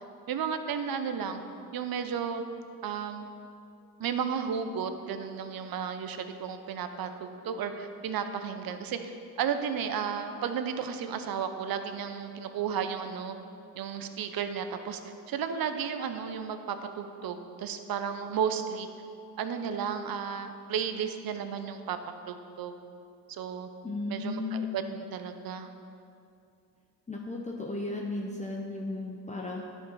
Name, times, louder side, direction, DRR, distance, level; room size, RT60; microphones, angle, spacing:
voice 1, 0.3-1.4 1.7-2.4 2.8-3.3 4.0-13.4 13.7-18.9 19.4-22.0 22.3-22.8 23.3-23.7 24.1-25.7, right 7 dB, 55° right, 8 dB, 0.8 m, -33 dB
voice 2, 23.8-24.9 27.1-29.6, left 2 dB, 15° left, -1 dB, 0.8 m, -35 dB
10.5 x 4.6 x 5.5 m, 2.5 s
supercardioid pair, 65°, 42 cm